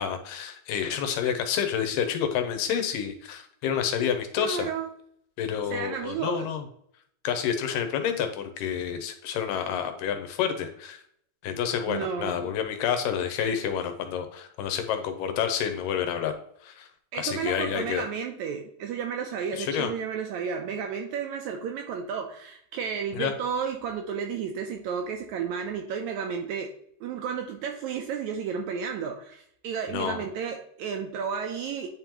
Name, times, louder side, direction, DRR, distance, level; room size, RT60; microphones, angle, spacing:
voice 1, 0.0-4.7 5.4-6.6 7.2-11.0 11.4-16.3 16.6-16.9 17.1-18.0 19.6-19.9 23.1-23.3 29.9-30.3, left 8 dB, 85° left, 6 dB, 2.4 m, -29 dB
voice 2, 4.4-4.9 5.7-6.5 11.8-12.5 17.1-26.7 27.0-31.9, right 6 dB, 80° right, 3 dB, 1.7 m, -32 dB
9.5 x 3.7 x 3.0 m, 0.68 s
omnidirectional pair, 3.8 m